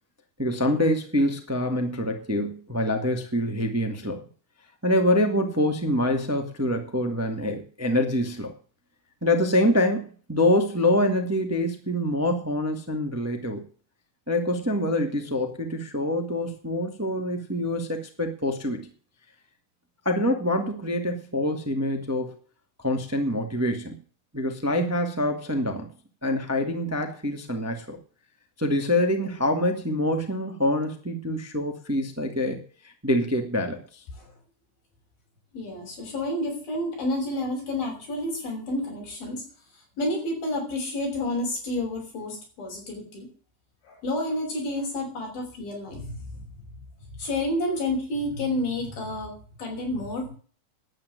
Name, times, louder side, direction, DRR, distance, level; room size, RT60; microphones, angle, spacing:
voice 1, 0.4-4.2 4.8-8.5 9.2-13.6 14.3-18.9 20.0-22.4 22.8-23.9 24.3-25.9 26.2-28.0 28.6-34.0, left 1 dB, 5° right, 5 dB, 1.4 m, -25 dB
voice 2, 35.5-39.4 40.0-43.3 43.9-46.4 47.2-50.3, left 1 dB, 85° left, 0 dB, 8.2 m, -30 dB
11.5 x 9.2 x 9.5 m, 0.41 s
omnidirectional pair, 4.1 m